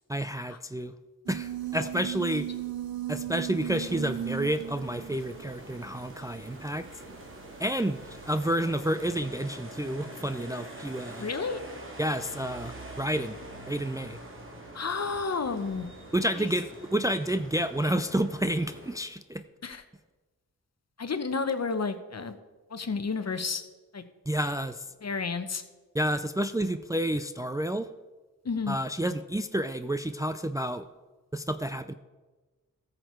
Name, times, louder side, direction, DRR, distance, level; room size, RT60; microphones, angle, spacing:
voice 1, 0.1-0.9 1.3-2.5 3.1-6.9 7.6-11.3 12.0-13.4 13.7-14.2 16.1-19.4 24.3-24.8 25.9-27.9 28.7-30.8 31.3-31.9, right 1 dB, 10° right, 10 dB, 0.5 m, -30 dB
sound 1, 1.3-8.5, right 11 dB, 80° right, 0.7 m, -37 dB
sound 2, 3.8-18.9, right 1 dB, 35° right, 2.3 m, -45 dB
voice 2, 11.2-11.6 14.7-15.9 16.3-16.5 19.6-19.8 21.0-22.4 22.7-23.6 23.9-24.0 25.0-25.6 28.4-28.8, left 4 dB, 45° left, 10 dB, 1.0 m, -31 dB
14.0 x 6.7 x 4.6 m, 1.2 s
cardioid pair, 50°, 35 cm